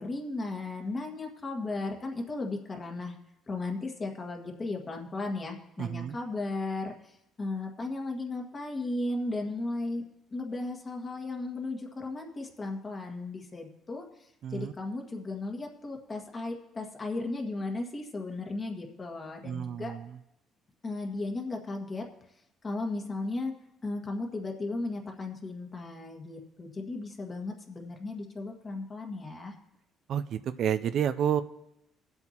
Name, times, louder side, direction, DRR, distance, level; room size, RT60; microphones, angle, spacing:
voice 1, 0.0-3.2 3.5-10.0 10.3-19.9 20.8-22.0 22.6-23.5 23.8-29.5, left 2 dB, 35° left, 2 dB, 1.7 m, -35 dB
voice 2, 5.8-6.2 14.4-14.7 19.4-20.1 30.1-31.4, right 9 dB, 65° right, 12 dB, 0.4 m, -30 dB
20.0 x 8.0 x 2.9 m, 0.83 s
cardioid pair, 90°, 0 cm